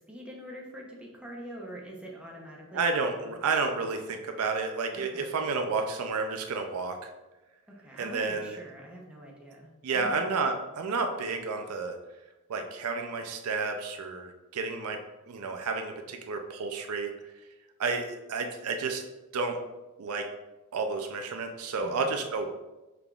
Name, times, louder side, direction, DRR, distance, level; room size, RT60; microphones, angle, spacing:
voice 1, 0.1-3.4 4.9-5.3 7.7-10.2 21.8-22.2, equal, 5° right, -3 dB, 0.7 m, -44 dB
voice 2, 2.7-7.1 8.0-8.6 9.8-12.0 12.5-15.0 15.3-17.1 17.8-19.0 19.3-19.6 20.0-20.3 20.7-22.5, right 4 dB, 70° right, 4 dB, 0.5 m, -31 dB
5.8 x 3.5 x 2.4 m, 1.0 s
head